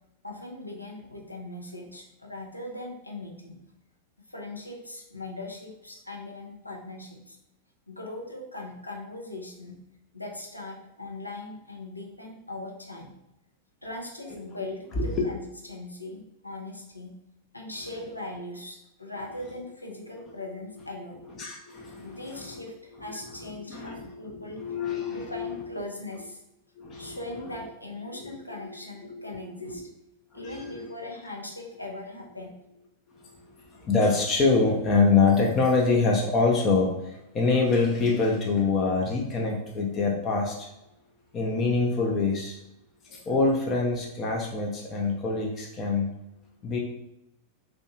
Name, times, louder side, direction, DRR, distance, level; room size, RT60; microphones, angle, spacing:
voice 1, 0.2-3.6 4.2-7.4 7.9-9.8 10.1-13.1 13.8-17.2 17.5-21.2 22.0-24.6 25.1-26.4 27.0-29.9 30.3-32.6, left 2 dB, 85° left, 0 dB, 0.5 m, -40 dB
voice 2, 21.4-22.7 23.0-25.8 26.8-27.2 28.1-28.3 28.6-28.8 29.1-29.8 30.3-30.9 33.1-40.7 41.3-42.6 43.0-46.1 46.6-46.8, left 4 dB, 30° left, -1 dB, 0.4 m, -26 dB
2.6 x 2.1 x 2.7 m, 0.87 s
figure-of-eight pair, 90°, 0 cm